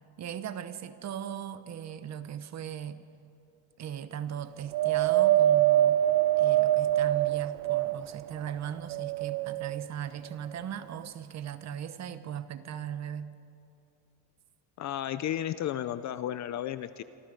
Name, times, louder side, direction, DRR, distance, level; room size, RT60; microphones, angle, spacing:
voice 1, 0.2-3.0 3.8-6.0 6.4-13.3, right 9 dB, 35° right, 12 dB, 0.9 m, -38 dB
Wind, 4.7-8.2 8.8-9.8 10.6-10.7, right 13 dB, 55° right, 0.5 m, -24 dB
voice 2, 14.8-17.0, left 11 dB, 40° left, 13 dB, 0.5 m, -33 dB
27.5 x 25.0 x 5.2 m, 2.7 s
cardioid pair, 165°, 48 cm